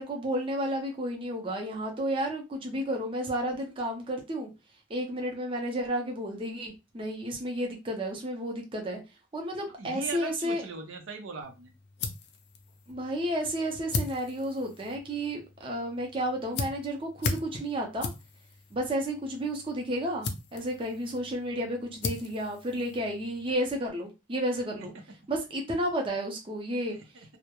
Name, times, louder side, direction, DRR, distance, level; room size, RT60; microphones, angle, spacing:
voice 1, 0.0-4.5 4.9-9.0 9.3-10.6 12.9-18.1 18.7-24.9 25.3-27.0, right 1 dB, 25° right, 0.5 m, -32 dB
voice 2, 9.8-11.7 27.1-27.4, right 4 dB, 85° right, 0.6 m, -39 dB
sound 1, 11.4-23.5, left 4 dB, 55° left, 0.4 m, -39 dB
2.2 x 2.0 x 2.9 m
head